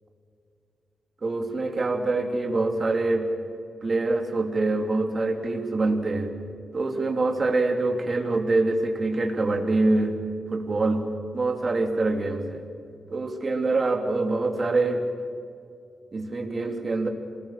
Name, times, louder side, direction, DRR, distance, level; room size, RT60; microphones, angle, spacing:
voice 1, 1.2-3.3 3.8-6.3 6.7-10.2 10.5-11.1 11.3-12.6 13.1-15.0 16.1-17.1, right 2 dB, 40° right, 4 dB, 3.1 m, -25 dB
27.0 x 20.0 x 7.5 m, 2.4 s
cardioid pair, 90°, 0 cm